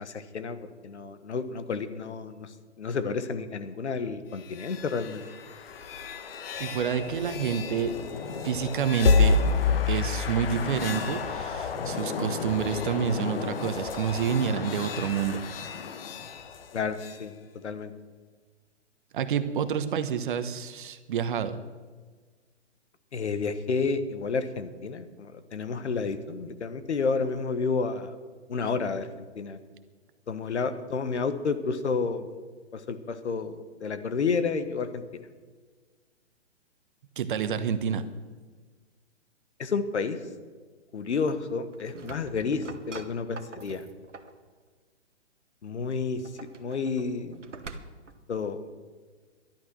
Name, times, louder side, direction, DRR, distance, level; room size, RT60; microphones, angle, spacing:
voice 1, 0.0-2.5 2.8-5.2 16.7-17.3 17.6-17.9 23.1-28.1 28.5-29.1 29.3-29.6 30.3-32.3 32.7-35.0 39.6-40.2 40.9-43.8 45.6-46.2 46.6-47.4 48.3-48.6, left 4 dB, 70° left, 11 dB, 1.5 m, -30 dB
sound 1, 4.4-17.2, left 4 dB, 50° left, 1.4 m, -30 dB
voice 2, 6.6-8.0 8.4-9.4 9.9-15.4 19.1-21.6 37.2-38.1, right 7 dB, 45° right, 11 dB, 1.0 m, -28 dB
sound 2, 41.6-44.4 46.0-48.2, right 4 dB, 85° right, 1.3 m, -45 dB
12.0 x 11.5 x 6.3 m, 1.4 s
hypercardioid pair, 135°, 35 cm